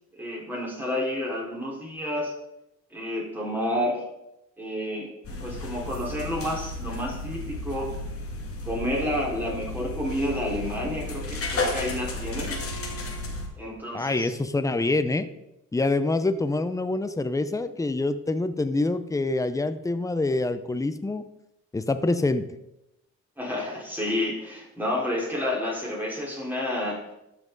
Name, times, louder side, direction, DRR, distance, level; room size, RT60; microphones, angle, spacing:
voice 1, 0.1-2.3 2.9-4.0 4.6-7.9 8.6-12.6 13.6-14.3 23.4-27.0, left 1 dB, 5° right, -5 dB, 4.1 m, -30 dB
sound 1, 5.2-13.5, left 2 dB, 50° left, 2.2 m, -33 dB
voice 2, 13.9-15.3 15.7-21.2 21.7-22.5, left 2 dB, 10° left, 11 dB, 0.7 m, -26 dB
13.0 x 5.9 x 3.9 m, 0.88 s
cardioid pair, 90°, 30 cm